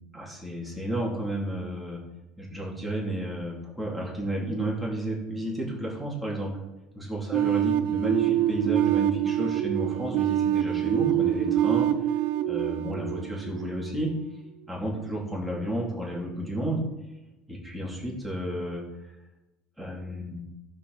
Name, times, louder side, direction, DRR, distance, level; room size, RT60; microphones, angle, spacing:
voice 1, 0.1-2.0 2.4-6.6 7.0-11.9 12.5-14.1 14.7-16.8 17.5-18.8 19.8-20.4, right 1 dB, ahead, -3 dB, 2.8 m, -32 dB
sound 1, 7.3-14.1, right 12 dB, 55° right, 0.7 m, -25 dB
14.0 x 7.0 x 4.1 m, 1.0 s
cardioid pair, 145°, 3 cm